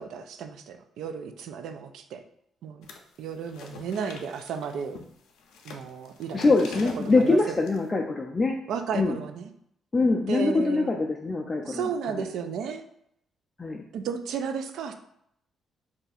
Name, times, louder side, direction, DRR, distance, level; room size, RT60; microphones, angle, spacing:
voice 1, 0.0-2.2 2.6-2.9 3.2-5.0 5.6-6.4 7.0-7.6 8.7-9.5 10.3-10.9 11.6-12.8 13.9-14.9, right 6 dB, 80° right, 8 dB, 0.3 m, -33 dB
sound 1, 2.8-3.2 3.5-7.8, left 4 dB, 85° left, 0.5 m, -44 dB
voice 2, 6.3-8.6 8.9-9.2 9.9-11.9 12.2-12.3 13.6-13.8, left 3 dB, 25° left, 1 dB, 0.3 m, -24 dB
2.7 x 2.4 x 4.0 m, 0.74 s
cardioid pair, 90°, 0 cm